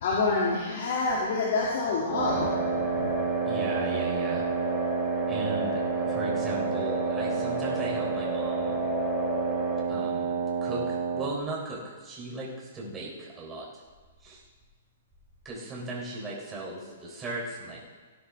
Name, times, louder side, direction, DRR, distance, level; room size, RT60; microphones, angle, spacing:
voice 1, 0.0-2.5 2.8-3.1, left 3 dB, 60° left, -5 dB, 2.6 m, -27 dB
Wind instrument woodwind instrument, 2.1-11.4, right 6 dB, 60° right, 1.1 m, -29 dB
sound 1, 2.2-9.8, left 3 dB, 15° left, 1.7 m, -35 dB
voice 2, 3.5-4.5 5.2-8.8 9.9-13.7 14.2-14.4 15.5-17.8, right 2 dB, 15° right, -4 dB, 3.6 m, -37 dB
17.5 x 10.5 x 3.6 m, 1.3 s
hypercardioid pair, 140°, 0 cm